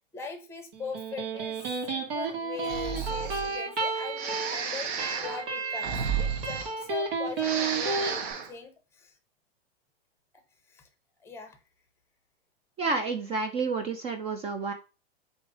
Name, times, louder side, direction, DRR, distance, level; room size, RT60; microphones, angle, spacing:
voice 1, 0.1-4.9 5.2-9.1 10.7-10.8 11.2-11.6, left 5 dB, 10° left, 7 dB, 0.8 m, -41 dB
Electric guitar, 0.7-8.1, right 4 dB, 70° right, 1.6 m, -32 dB
Breathing, 2.6-3.6 4.2-7.1 7.3-8.5, right 6 dB, 50° right, 0.9 m, -33 dB
voice 2, 12.8-14.7, right 4 dB, 20° right, 5 dB, 0.4 m, -30 dB
3.8 x 2.6 x 4.6 m, 0.32 s
hypercardioid pair, 125°, 31 cm